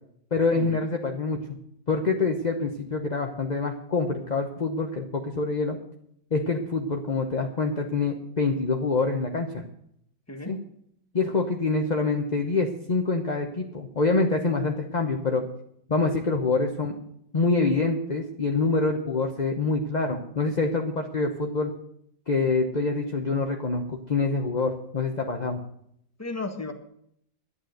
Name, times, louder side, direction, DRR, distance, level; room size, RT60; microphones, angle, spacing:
voice 1, 0.3-1.4 1.9-5.8 6.3-9.6 10.4-10.6 11.1-15.4 15.9-17.0 17.3-21.7 22.3-25.6, left 3 dB, 35° left, 3 dB, 0.8 m, -26 dB
voice 2, 26.2-26.7, left 3 dB, 10° left, 5 dB, 1.2 m, -34 dB
11.5 x 9.7 x 7.9 m, 0.71 s
omnidirectional pair, 2.1 m